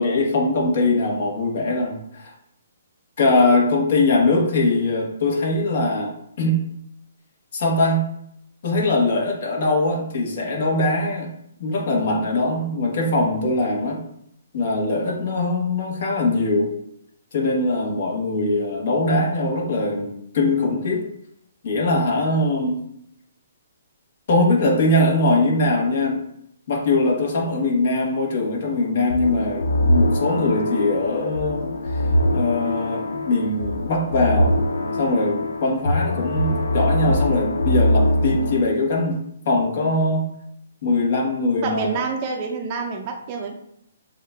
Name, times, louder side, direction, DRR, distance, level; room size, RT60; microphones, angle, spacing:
voice 1, 0.0-2.3 3.2-6.6 7.5-8.0 8.6-11.3 11.6-14.0 14.5-16.7 17.3-21.0 21.6-22.8 24.3-26.2 26.7-31.7 31.9-32.0 32.3-34.5 35.0-39.2 39.4-40.3 40.8-42.0, left 2 dB, 55° left, -1 dB, 1.4 m, -21 dB
sound 1, 29.1-38.6, left 1 dB, 90° left, 0.5 m, -22 dB
voice 2, 41.6-43.5, right 4 dB, 30° right, 1 dB, 0.5 m, -27 dB
7.1 x 2.7 x 2.4 m, 0.73 s
hypercardioid pair, 145°, 0 cm